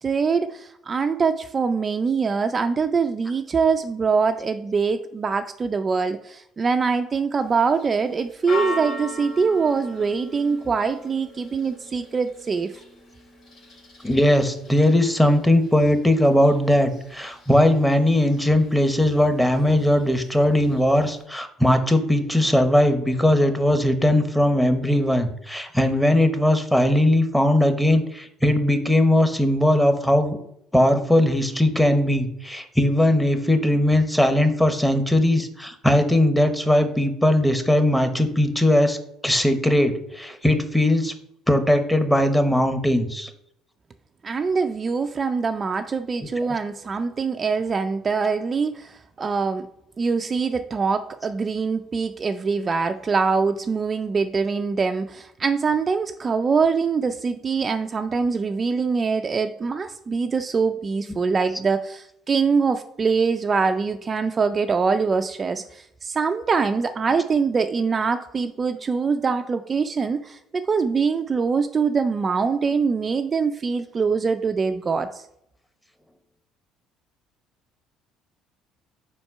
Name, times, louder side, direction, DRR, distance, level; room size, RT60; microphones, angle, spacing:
voice 1, 0.0-12.8 44.2-49.7 50.0-75.2, right 5 dB, 35° right, 7 dB, 0.4 m, -23 dB
Church bell, 7.4-21.2, left 1 dB, 65° left, 2.3 m, -40 dB
voice 2, 14.0-30.4 30.7-39.0 39.2-41.1 41.5-43.3, left 1 dB, 5° left, 8 dB, 1.0 m, -19 dB
4.4 x 4.3 x 5.5 m, 0.75 s
hypercardioid pair, 65°, 0 cm